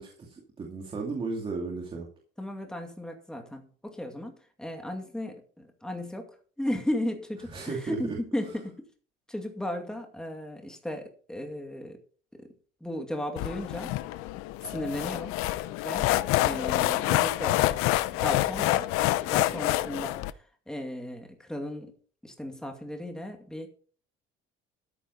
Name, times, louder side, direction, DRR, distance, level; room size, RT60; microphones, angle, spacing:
voice 1, 0.0-2.1 7.5-8.2, right 4 dB, 25° right, 0 dB, 2.4 m, -34 dB
voice 2, 2.4-8.8 9.3-12.0 12.3-12.5 12.8-14.0 14.7-15.4 15.8-17.7 18.1-18.9 19.2-22.0 22.2-23.7, left 1 dB, 5° left, 3 dB, 2.4 m, -35 dB
sound 1, 13.4-20.3, left 16 dB, 90° left, 0.7 m, -27 dB
13.5 x 10.0 x 4.1 m, 0.41 s
cardioid pair, 170°, 21 cm